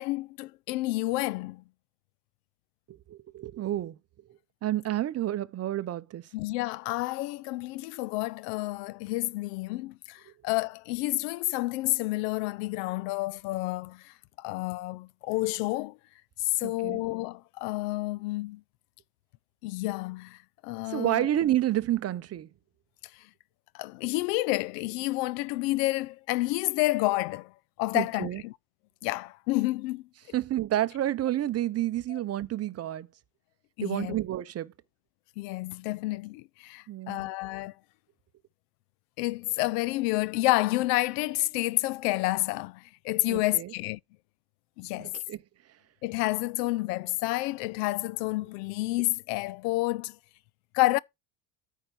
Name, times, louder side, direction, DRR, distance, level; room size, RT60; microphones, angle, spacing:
voice 1, 0.0-1.6 6.3-16.0 16.4-18.6 19.6-21.3 23.7-27.5 27.8-28.5 29.0-30.4 32.1-32.2 33.8-34.1 35.4-37.7 39.2-44.0 44.8-45.2 46.0-50.2 50.7-51.0, left 20 dB, 75° left, 0.5 m, -29 dB
voice 2, 2.9-4.0 4.6-6.3 16.6-17.0 20.9-22.5 27.9-28.4 30.3-33.1 33.8-34.7 36.9-37.3 43.3-43.7 45.0-45.4, right 13 dB, 30° right, 0.6 m, -30 dB
8.8 x 4.5 x 5.2 m
supercardioid pair, 100°, 49 cm